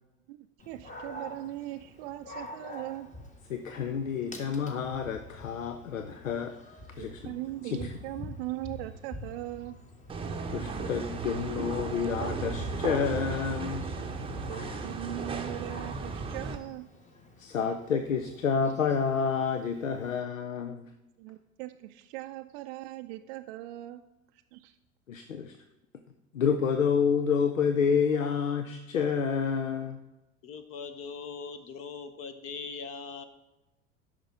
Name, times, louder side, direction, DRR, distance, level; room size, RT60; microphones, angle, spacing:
voice 1, 0.3-3.1 7.0-9.8 14.5-16.9 21.2-24.0 24.3-24.8, right 16 dB, 50° right, 7 dB, 0.4 m, -40 dB
Dog, 0.6-20.2, left 1 dB, 20° left, 1.4 m, -47 dB
voice 2, 3.5-6.5 7.0-7.2 7.7-7.8 10.5-13.9 17.4-20.9 25.1-25.6 26.3-30.0, left 6 dB, 85° left, 8 dB, 0.6 m, -29 dB
sound 1, 10.1-16.6, right 4 dB, 15° right, 0.8 m, -35 dB
voice 3, 30.4-33.2, left 5 dB, 35° left, 10 dB, 0.8 m, -40 dB
10.0 x 6.0 x 3.6 m, 0.99 s
figure-of-eight pair, 80°, 39 cm